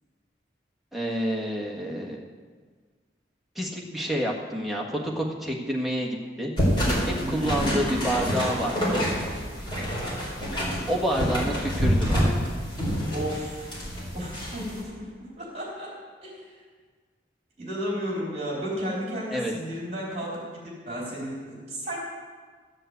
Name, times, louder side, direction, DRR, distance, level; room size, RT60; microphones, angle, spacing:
voice 1, 0.9-2.2 3.5-6.5 7.0-9.1 10.9-12.3 19.3-19.5, equal, ahead, -2 dB, 1.5 m, -28 dB
sound 1, 6.6-14.8, equal, 25° left, 4.0 m, -27 dB
voice 2, 7.2-7.5 13.1-13.8 14.1-16.6 17.6-22.0, equal, 35° right, -5 dB, 3.7 m, -34 dB
13.0 x 7.7 x 8.0 m, 1.6 s
head